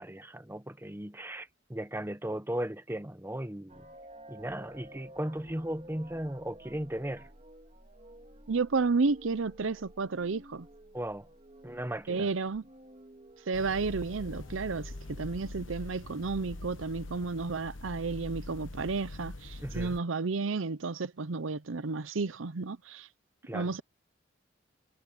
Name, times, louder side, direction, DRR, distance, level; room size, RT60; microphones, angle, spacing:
voice 1, 0.0-3.9 4.3-7.3 10.9-11.3 11.6-12.3 19.6-20.0 23.4-23.7, right 1 dB, 10° right, 1.0 m, -37 dB
sound 1, 3.7-15.3, right 1 dB, 35° right, 2.2 m, -53 dB
voice 2, 8.5-10.7 12.1-12.7 13.5-23.1 23.5-23.8, right 4 dB, 85° right, 0.7 m, -32 dB
sound 2, 13.5-20.0, left 2 dB, 75° left, 1.1 m, -43 dB
head